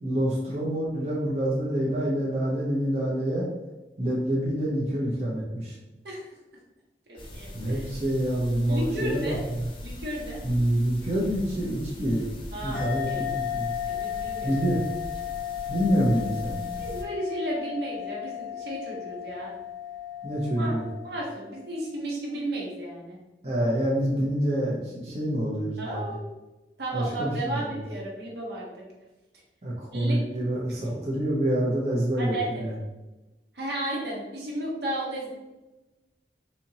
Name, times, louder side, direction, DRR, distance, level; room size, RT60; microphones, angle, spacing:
voice 1, 0.0-3.5 4.0-5.7 7.5-9.7 10.4-12.3 12.6-13.7 14.4-14.8 15.7-16.6 20.2-20.9 23.4-26.1 26.9-27.8 29.6-32.7, right 1 dB, 40° right, -6 dB, 0.8 m, -27 dB
voice 2, 7.1-7.9 8.7-9.4 9.8-10.4 12.5-13.2 13.9-14.7 16.8-19.5 20.6-20.8 21.0-23.2 25.8-26.3 26.8-28.8 29.9-30.2 32.2-32.7 33.5-35.3, right 1 dB, 70° right, -3 dB, 1.1 m, -33 dB
sound 1, 7.2-17.0, left 1 dB, 30° left, 0.5 m, -41 dB
sound 2, 12.7-21.8, left 10 dB, 80° left, 1.3 m, -35 dB
4.2 x 2.8 x 2.8 m, 1.1 s
head